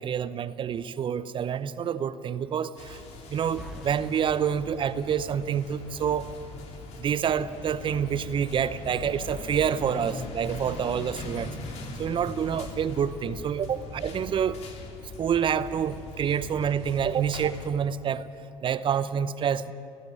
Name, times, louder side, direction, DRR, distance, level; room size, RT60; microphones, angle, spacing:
voice 1, 0.0-3.0 3.3-6.3 7.0-11.5 12.0-14.6 15.2-18.3 18.6-19.7, right 8 dB, 40° right, 15 dB, 0.8 m, -27 dB
sound 1, 2.8-17.7, left 3 dB, 55° left, 3.1 m, -40 dB
sound 2, 3.6-5.7, left 1 dB, ahead, 1.8 m, -47 dB
18.5 x 15.5 x 9.4 m, 2.7 s
hypercardioid pair, 70°, 13 cm